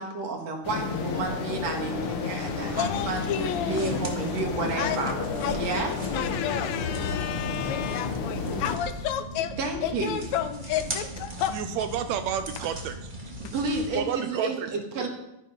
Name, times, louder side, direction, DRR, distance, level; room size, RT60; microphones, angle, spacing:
voice 1, 0.0-3.2 3.7-5.1 5.5-5.9 9.6-10.2 13.5-15.1, right 3 dB, 60° right, 2 dB, 2.8 m, -31 dB
sound 1, 0.6-8.8, left 5 dB, 60° left, 1.7 m, -31 dB
sound 2, 2.4-14.0, right 1 dB, 20° right, 1.3 m, -39 dB
voice 2, 2.8-4.1 4.8-5.0 5.4-11.6, left 10 dB, 75° left, 10 dB, 2.0 m, -31 dB
voice 3, 11.5-13.0 13.9-14.7 15.0-15.1, right 9 dB, 75° right, 9 dB, 1.8 m, -30 dB
12.0 x 9.4 x 5.6 m, 0.86 s
omnidirectional pair, 3.4 m